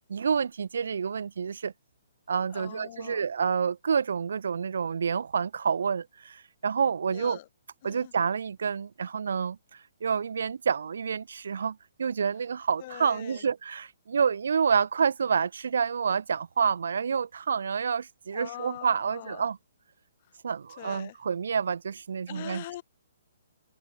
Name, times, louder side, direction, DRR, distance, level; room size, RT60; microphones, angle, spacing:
voice 1, 0.1-1.7 2.3-7.4 7.8-19.6 20.4-22.6, right 6 dB, 60° right, 1.1 m, -28 dB
voice 2, 2.5-3.3 7.1-7.5 7.8-8.1 12.8-13.5 18.3-19.4 20.8-21.2 22.3-22.8, left 15 dB, 35° left, 0.9 m, -42 dB
figure-of-eight pair, 130°, 0 cm